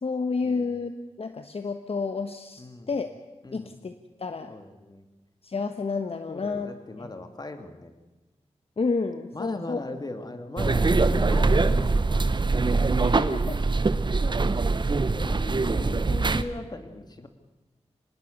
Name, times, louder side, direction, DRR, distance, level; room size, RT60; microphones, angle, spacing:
voice 1, 0.0-0.9 1.2-2.6 2.9-3.1 3.5-3.9 4.2-4.5 5.4-6.7 7.0-7.1 8.8-9.8 13.0-13.6, left 4 dB, 60° left, 8 dB, 1.2 m, -30 dB
voice 2, 2.6-2.9 3.4-3.7 4.5-5.1 6.3-7.9 9.3-12.9 14.0-14.6 15.1-17.3, left 2 dB, 35° left, 7 dB, 2.5 m, -39 dB
sound 1, 10.6-16.4, right 3 dB, 40° right, 1.0 m, -23 dB
25.5 x 20.0 x 6.7 m, 1.1 s
wide cardioid pair, 85°, 11 cm